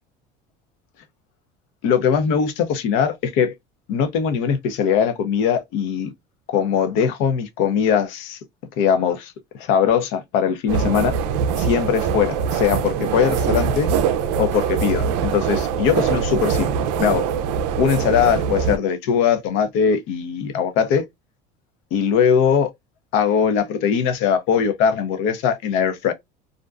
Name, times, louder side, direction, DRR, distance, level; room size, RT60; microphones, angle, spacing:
voice 1, 1.8-3.5 3.9-6.1 6.5-8.4 8.8-9.3 9.6-11.2 11.6-13.9 14.4-17.2 17.8-21.0 21.9-22.7 23.1-26.1, left 7 dB, 70° left, 0.6 m, -20 dB
sound 1, 10.7-18.8, right 7 dB, 80° right, 0.4 m, -23 dB
2.5 x 2.2 x 2.3 m
supercardioid pair, 100°, 21 cm